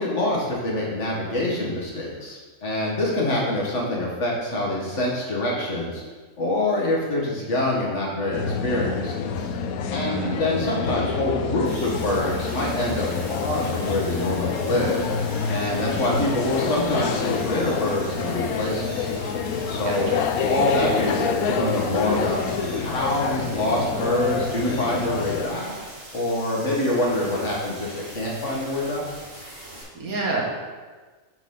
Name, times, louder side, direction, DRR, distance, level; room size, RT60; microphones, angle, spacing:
voice 1, 0.0-6.0 6.4-9.6 9.9-15.0 15.5-19.1 19.7-20.1 20.4-22.4 22.7-25.7 26.1-29.0, left 1 dB, 55° left, -4 dB, 2.0 m, -25 dB
sound 1, 8.3-25.5, left 6 dB, 90° left, 1.1 m, -27 dB
voice 2, 10.0-10.4 19.8-20.0 30.0-30.4, right 3 dB, 85° right, -3 dB, 2.0 m, -28 dB
sound 2, 11.6-29.8, right 1 dB, 60° right, 2.8 m, -41 dB
8.1 x 4.1 x 5.6 m, 1.4 s
omnidirectional pair, 1.5 m